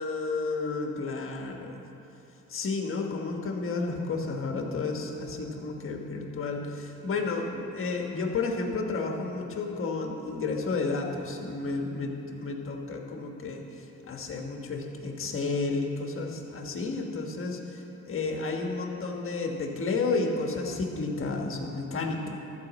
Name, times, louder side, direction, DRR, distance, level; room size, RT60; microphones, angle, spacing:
voice 1, 0.0-1.8 2.5-13.6 14.1-22.4, left 3 dB, 45° left, 2 dB, 1.4 m, -31 dB
13.0 x 5.1 x 7.4 m, 2.9 s
cardioid pair, 90°, 30 cm